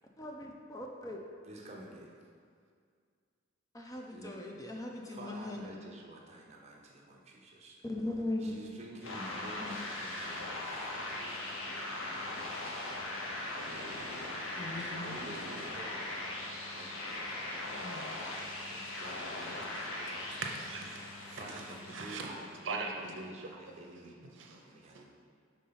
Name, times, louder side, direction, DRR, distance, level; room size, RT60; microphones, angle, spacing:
voice 1, 0.2-1.2 3.7-5.6 7.8-8.6 9.6-9.9 14.6-15.2 17.8-18.2, left 2 dB, 15° left, 0 dB, 0.4 m, -39 dB
voice 2, 1.4-2.1 4.1-4.3 5.1-7.8 8.4-12.0 12.5-12.9 14.7-16.1 16.7-17.6 18.7-19.9 21.3-24.2 24.6-25.0, right 1 dB, 35° right, -2 dB, 0.8 m, -49 dB
sound 1, 9.0-22.7, left 1 dB, 75° left, 0.8 m, -40 dB
voice 3, 20.4-22.3 22.6-23.3 24.3-24.6 24.9-25.0, right 4 dB, 65° right, 1 dB, 0.7 m, -41 dB
5.4 x 3.7 x 5.6 m, 2.1 s
head